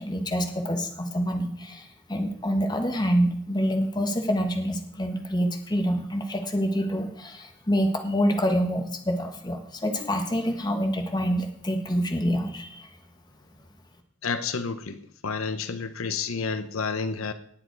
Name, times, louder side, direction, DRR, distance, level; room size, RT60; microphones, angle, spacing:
voice 1, 0.0-12.9, equal, 20° left, 5 dB, 1.4 m, -26 dB
voice 2, 14.2-17.3, left 5 dB, 90° left, 11 dB, 0.9 m, -30 dB
18.5 x 7.6 x 4.7 m, 0.65 s
head